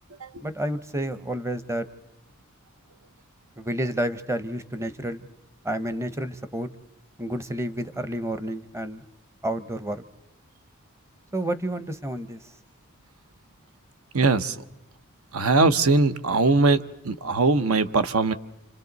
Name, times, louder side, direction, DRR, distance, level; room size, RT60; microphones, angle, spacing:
voice 1, 0.4-1.9 3.6-5.3 5.6-6.7 7.2-9.0 9.4-10.0 11.3-12.4, right 1 dB, 10° right, 12 dB, 0.7 m, -30 dB
voice 2, 14.1-14.5 15.3-16.8 17.0-18.3, right 3 dB, 80° right, 12 dB, 0.8 m, -20 dB
29.5 x 26.5 x 4.0 m, 0.92 s
head